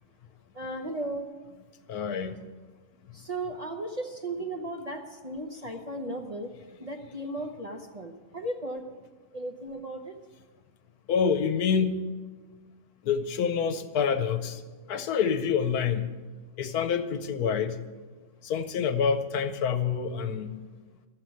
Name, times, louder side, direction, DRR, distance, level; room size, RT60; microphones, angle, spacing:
voice 1, 0.5-1.3 3.1-6.5 6.8-8.9 9.3-10.1, right 1 dB, 35° right, 2 dB, 0.7 m, -36 dB
voice 2, 1.9-2.3 11.1-12.1 13.0-14.6 14.9-16.1 16.6-17.8 18.4-20.6, left 6 dB, 80° left, 10 dB, 1.3 m, -27 dB
12.5 x 7.9 x 7.9 m, 1.4 s
omnidirectional pair, 1.6 m